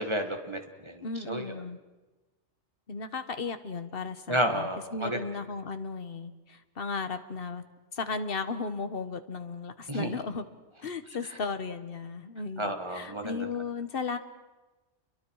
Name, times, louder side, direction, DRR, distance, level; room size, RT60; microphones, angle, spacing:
voice 1, 0.0-1.4 4.3-5.2 9.9-10.1 12.6-13.5, right 1 dB, 20° right, 5 dB, 1.9 m, -31 dB
voice 2, 1.0-1.8 2.9-7.6 7.9-10.4 10.8-14.2, left 4 dB, 45° left, 9 dB, 1.4 m, -35 dB
29.5 x 23.0 x 4.8 m, 1.2 s
omnidirectional pair, 1.4 m